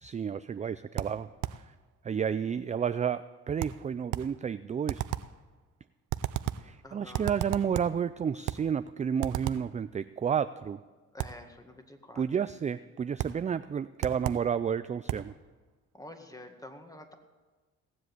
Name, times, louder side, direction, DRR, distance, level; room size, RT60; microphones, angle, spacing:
voice 1, 0.0-1.3 2.0-5.0 6.6-10.8 12.1-15.3, right 7 dB, 25° right, 13 dB, 0.4 m, -31 dB
sound 1, 1.0-1.7 3.6-4.4 4.9-5.4 6.1-6.7 7.1-8.0 8.5-8.7 9.2-9.7 11.2-11.5 13.2-13.5 14.0-14.5 15.1-15.3, right 13 dB, 80° right, 0.6 m, -34 dB
voice 2, 6.8-7.3 11.1-12.2 16.0-17.1, left 1 dB, 10° left, 5 dB, 1.9 m, -48 dB
17.5 x 7.6 x 7.9 m, 1.3 s
cardioid pair, 90°, 30 cm